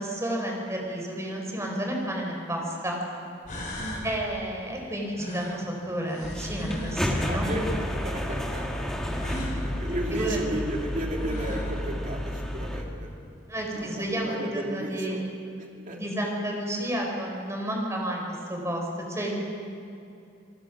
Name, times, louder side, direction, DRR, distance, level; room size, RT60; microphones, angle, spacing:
voice 1, 0.0-3.0 4.0-7.5 9.3-9.5 10.1-10.4 13.5-15.2 15.9-19.4, right 1 dB, 15° right, 0 dB, 4.4 m, -31 dB
sound 1, 2.0-2.1 3.0-3.1 3.4-4.1 5.1-7.1 9.1-9.6 10.8-10.9 11.2-11.8, left 1 dB, 40° left, 4.7 m, -37 dB
sound 2, 6.2-12.8, equal, 5° left, 1.9 m, -31 dB
voice 2, 7.3-7.7 8.0-8.9 9.6-13.1 13.7-15.2 15.6-16.0, right 1 dB, 40° right, 0 dB, 3.0 m, -34 dB
28.0 x 19.0 x 6.1 m, 2.7 s
head